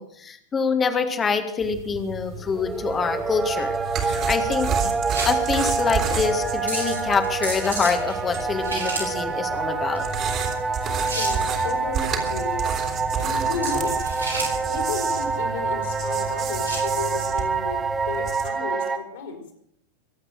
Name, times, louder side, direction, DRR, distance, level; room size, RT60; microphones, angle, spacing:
voice 1, 0.0-4.9 5.2-10.0, left 5 dB, 20° left, 7 dB, 1.8 m, -25 dB
sound 1, 1.6-18.5, right 6 dB, 35° right, 3.1 m, -32 dB
sound 2, 2.2-16.9, right 2 dB, 85° right, 7.1 m, -35 dB
sound 3, 2.5-19.0, right 4 dB, 15° right, 1.5 m, -27 dB
voice 2, 11.1-12.7 13.2-14.1 14.7-19.4, left 5 dB, 55° left, 4 dB, 4.2 m, -33 dB
23.0 x 8.6 x 6.5 m, 0.71 s
figure-of-eight pair, 90°, 0 cm